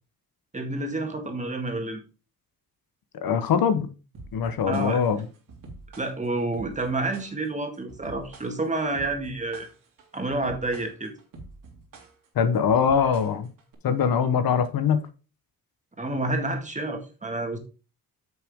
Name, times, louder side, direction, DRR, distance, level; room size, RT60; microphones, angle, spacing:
voice 1, 0.5-2.0 4.7-5.0 6.0-9.7 10.1-11.1 16.0-17.6, right 2 dB, 20° right, 1.9 m, -29 dB
voice 2, 3.1-3.9 4.3-5.3 12.3-13.5 13.8-15.0, left 7 dB, 75° left, 1.1 m, -22 dB
sound 1, 4.1-13.7, right 2 dB, 65° right, 2.6 m, -46 dB
9.2 x 6.0 x 3.6 m
cardioid pair, 125°, 36 cm